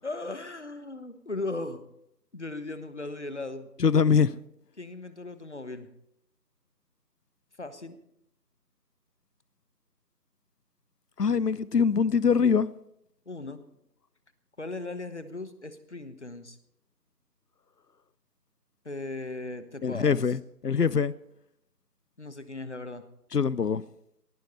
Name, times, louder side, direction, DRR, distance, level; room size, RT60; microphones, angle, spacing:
voice 1, 0.0-1.8 2.3-3.7 4.8-5.9 7.6-8.0 13.2-13.6 14.6-16.6 18.8-20.2 22.2-23.0, left 2 dB, 45° left, 1.2 m, -37 dB
voice 2, 3.8-4.4 11.2-12.7 19.8-21.1 23.3-23.8, left 6 dB, 70° left, 0.7 m, -23 dB
18.0 x 15.0 x 4.3 m
figure-of-eight pair, 170°, 49 cm